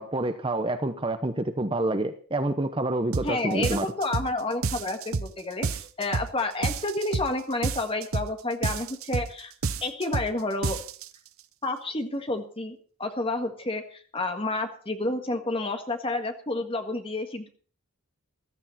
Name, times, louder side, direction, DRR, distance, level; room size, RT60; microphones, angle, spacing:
voice 1, 0.0-3.9, right 2 dB, 25° right, 9 dB, 0.8 m, -28 dB
sound 1, 3.1-3.3 3.6-4.3 4.6-5.3 5.6-6.3 6.6-7.3 7.6-8.3 8.6-9.3 9.6-10.3 10.6-11.1, right 4 dB, 70° right, 0.7 m, -29 dB
voice 2, 3.2-9.5 9.8-10.8 11.6-17.5, left 2 dB, 25° left, 6 dB, 1.6 m, -30 dB
15.0 x 13.5 x 4.2 m, 0.44 s
head